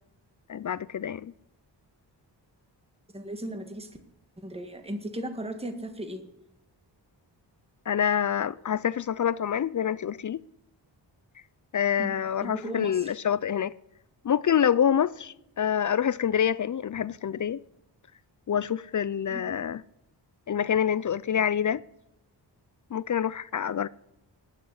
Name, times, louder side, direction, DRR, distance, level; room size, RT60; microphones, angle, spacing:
voice 1, 0.5-1.3 7.9-10.4 11.7-13.7 14.2-17.6 18.5-19.8 20.5-21.8 22.9-23.9, left 8 dB, 45° left, 0.4 m, -26 dB
voice 2, 3.1-3.9 4.4-6.3 12.0-12.1 12.4-13.1 19.3-19.4, right 1 dB, 15° right, 1.8 m, -36 dB
19.0 x 6.7 x 9.7 m
wide cardioid pair, 95°, 44 cm